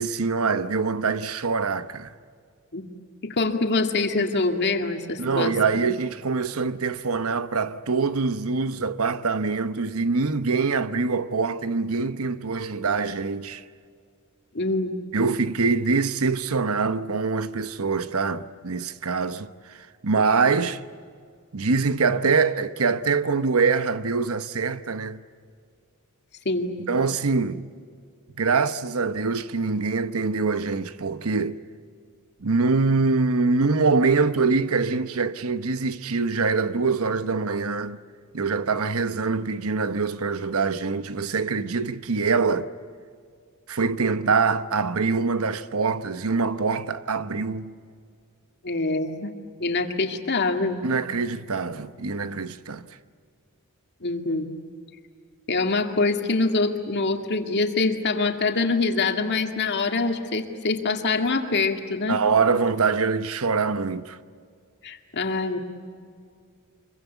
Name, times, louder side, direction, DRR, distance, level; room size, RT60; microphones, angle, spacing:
voice 1, 0.0-2.1 5.2-13.6 15.1-20.8 21.5-25.2 26.9-27.6 28.4-31.6 32.4-38.0 38.3-42.7 43.7-47.7 50.8-52.9 62.1-64.2, right 4 dB, 75° right, 0.9 m, -24 dB
voice 2, 3.2-5.5 14.5-15.0 26.5-26.7 48.6-49.3 49.6-50.8 54.0-54.5 55.5-62.2 64.8-65.6, left 3 dB, 50° left, 2.2 m, -24 dB
25.5 x 23.0 x 8.3 m
head